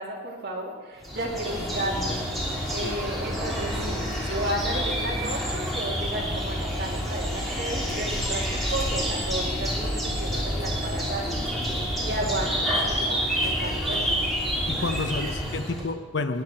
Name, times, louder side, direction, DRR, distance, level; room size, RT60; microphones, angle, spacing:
voice 1, 0.0-2.1 2.7-11.4 12.0-14.3 14.9-15.2 15.7-15.9, right 1 dB, 50° right, -2 dB, 2.6 m, -33 dB
sound 1, 1.0-15.9, equal, ahead, 3.1 m, -28 dB
voice 2, 14.7-16.4, left 3 dB, 55° left, 9 dB, 0.7 m, -30 dB
18.0 x 10.5 x 4.4 m, 1.4 s
head